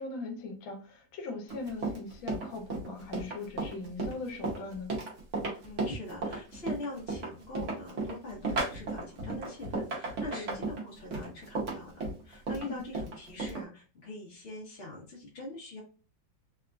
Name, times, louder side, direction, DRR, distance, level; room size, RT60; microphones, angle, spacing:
voice 1, 0.0-4.9 10.3-10.6 12.6-12.8, left 3 dB, 85° left, 1.5 m, -40 dB
Run, 1.5-13.6, right 3 dB, 55° right, 0.9 m, -34 dB
voice 2, 5.6-15.8, left 1 dB, 50° left, 0.8 m, -43 dB
3.4 x 2.3 x 2.3 m
omnidirectional pair, 2.1 m